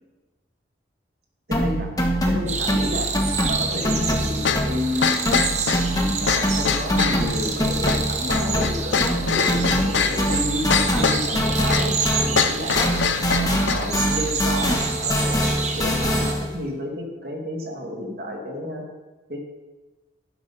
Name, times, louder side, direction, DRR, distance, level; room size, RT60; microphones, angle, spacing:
sound 1, 1.5-5.0 5.2-12.5 12.7-16.5, equal, 20° left, 1.4 m, -24 dB
voice 1, 1.5-1.9 2.2-3.1 3.5-5.6 6.3-10.7 11.0-12.8 13.3-18.8 19.3-19.4, left 1 dB, 55° right, 0 dB, 2.2 m, -31 dB
sound 2, 2.5-16.3, right 5 dB, 35° right, 1.1 m, -29 dB
sound 3, 4.4-13.9, left 6 dB, 75° left, 0.7 m, -24 dB
11.5 x 11.0 x 4.2 m, 1.2 s
head